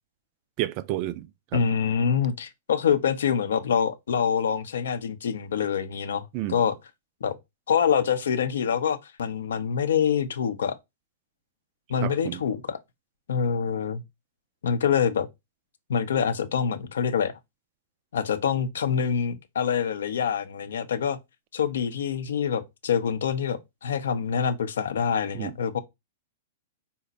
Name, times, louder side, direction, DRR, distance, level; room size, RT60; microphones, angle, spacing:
voice 1, 0.6-1.3 1.5-1.6 6.3-6.6 12.0-12.4 25.3-25.5, right 14 dB, 40° right, 0.3 m, -30 dB
voice 2, 1.5-6.7 7.2-7.4 7.7-10.8 11.9-12.8 13.3-14.0 14.6-15.3 15.9-17.3 18.1-21.2 21.5-25.8, left 7 dB, 65° left, 0.5 m, -25 dB
4.0 x 2.1 x 4.0 m
figure-of-eight pair, 105°, 0 cm